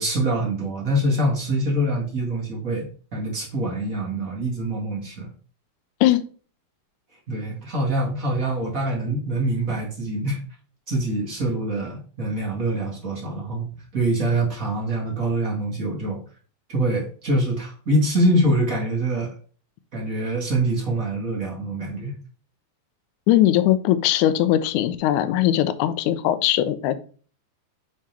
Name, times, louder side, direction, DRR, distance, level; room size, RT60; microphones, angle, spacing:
voice 1, 0.0-5.3 7.3-10.4 10.9-16.2 16.7-19.3 19.9-22.2, right 1 dB, 40° right, -2 dB, 1.2 m, -24 dB
voice 2, 23.3-27.0, left 13 dB, 85° left, 10 dB, 1.8 m, -20 dB
6.5 x 3.6 x 4.3 m, 0.40 s
omnidirectional pair, 4.2 m